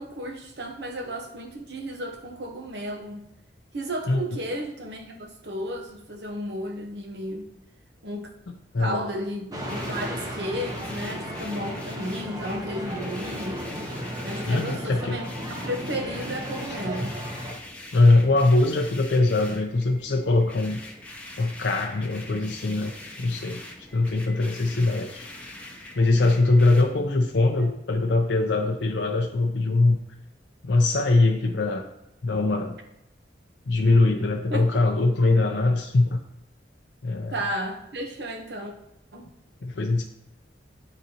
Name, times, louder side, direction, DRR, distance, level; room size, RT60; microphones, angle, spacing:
voice 1, 0.0-3.2 3.7-7.5 8.0-8.3 8.8-13.6 14.2-17.1 27.6-27.8 34.5-34.7 37.3-38.7 39.1-39.3, equal, 65° right, 3 dB, 1.0 m, -33 dB
voice 2, 4.1-4.4 8.7-9.0 14.5-15.2 17.9-20.8 21.4-22.9 23.2-23.6 23.9-25.3 26.0-30.0 30.6-31.8 32.2-32.8 33.7-36.2 37.0-37.3 39.6-40.0, left 2 dB, 75° left, 3 dB, 0.6 m, -22 dB
sound 1, 9.5-17.5, equal, 20° right, 0.9 m, -34 dB
sound 2, 9.7-26.8, left 1 dB, 5° left, 0.7 m, -43 dB
9.3 x 4.0 x 2.9 m, 0.86 s
head